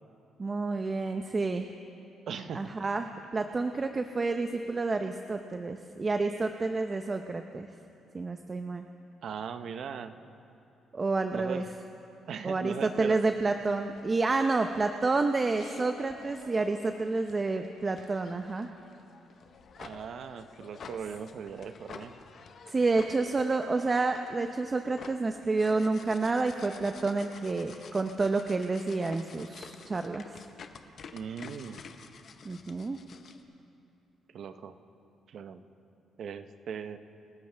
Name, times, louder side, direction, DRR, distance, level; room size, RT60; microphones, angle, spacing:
voice 1, 0.4-1.7 2.5-7.7 8.1-8.9 10.9-11.6 12.4-18.7 22.7-30.4 32.4-33.0, right 3 dB, 30° right, 6 dB, 0.6 m, -29 dB
voice 2, 2.3-2.6 9.2-10.2 11.3-11.7 12.3-13.2 19.8-22.1 31.1-31.8 34.3-34.8 35.3-35.6 36.2-37.0, right 7 dB, 65° right, 10 dB, 0.7 m, -39 dB
sound 1, 13.5-33.4, left 5 dB, 55° left, 0.9 m, -51 dB
27.5 x 13.0 x 3.4 m, 2.7 s
cardioid pair, 90°, 0 cm